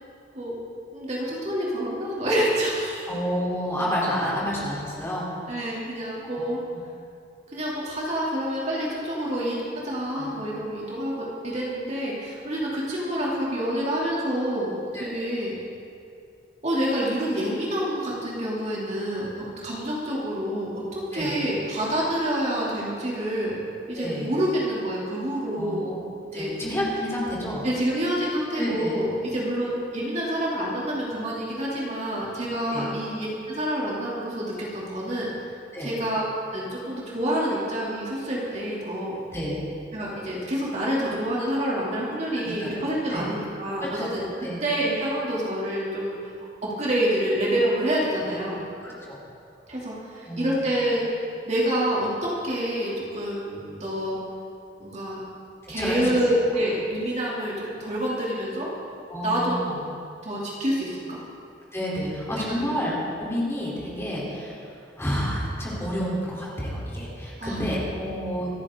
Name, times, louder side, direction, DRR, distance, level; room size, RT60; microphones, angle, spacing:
voice 1, 0.9-3.1 5.5-6.6 7.5-9.6 9.8-15.6 16.6-20.8 21.1-23.6 23.9-25.9 26.3-26.5 27.6-35.3 35.8-36.2 36.5-39.2 39.9-46.1 46.6-48.6 49.7-51.0 51.5-54.2 54.8-55.2 55.7-58.7 59.2-59.8 60.2-61.2 62.2-62.7 67.4-67.6 67.9-68.2, equal, 40° right, -5 dB, 3.0 m, -27 dB
voice 2, 3.1-5.3 6.3-6.8 10.1-10.3 14.9-15.3 21.1-21.4 23.9-24.3 25.5-26.0 26.3-27.7 28.6-29.1 32.7-32.9 35.7-35.9 39.3-39.5 42.4-42.7 43.1-43.2 43.8-44.1 44.4-44.6 48.8-49.2 50.2-50.7 55.8-56.2 59.1-59.8 61.7-64.6 65.0-68.5, equal, 15° left, -6 dB, 3.6 m, -30 dB
26.5 x 10.0 x 3.8 m, 2.4 s
head